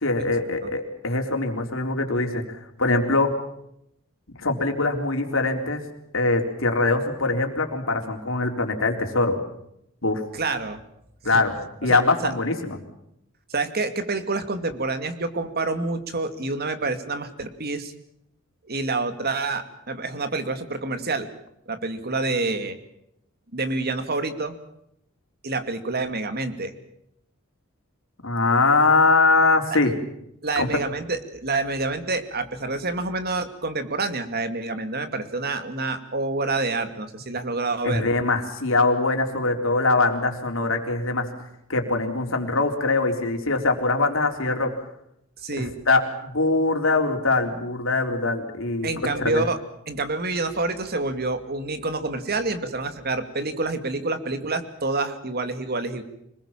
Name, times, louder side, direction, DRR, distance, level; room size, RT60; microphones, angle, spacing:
voice 1, 0.0-3.3 4.4-5.8 6.1-9.4 10.0-10.2 11.2-11.5 11.8-12.8 28.2-29.9 30.6-30.8 37.8-41.3 41.7-44.7 45.6-49.4, left 3 dB, 65° left, 4 dB, 3.8 m, -22 dB
voice 2, 10.3-10.8 11.2-11.4 11.9-12.3 13.5-17.9 18.7-21.3 21.7-22.8 23.5-24.6 25.4-26.7 30.4-38.1 45.4-45.7 48.8-49.6 49.9-56.0, right 3 dB, 50° right, 9 dB, 2.4 m, -27 dB
26.0 x 20.5 x 7.4 m, 0.77 s
head